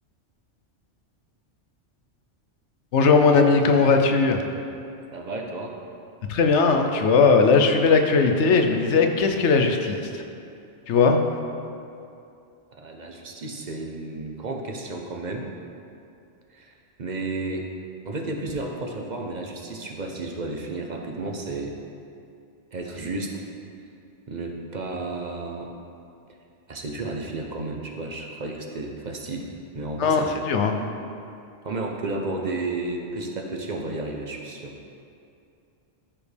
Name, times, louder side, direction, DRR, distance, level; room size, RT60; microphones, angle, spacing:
voice 1, 2.9-4.4 6.3-10.2 10.9-11.2 30.0-30.7, left 4 dB, 70° left, 5 dB, 1.0 m, -19 dB
voice 2, 5.1-5.8 12.7-15.5 16.5-16.7 17.0-17.7 18.1-21.7 22.7-23.4 24.3-25.7 26.7-30.3 31.6-34.7, right 2 dB, 45° right, 1 dB, 0.8 m, -32 dB
13.5 x 5.1 x 3.3 m, 2.6 s
omnidirectional pair, 1.3 m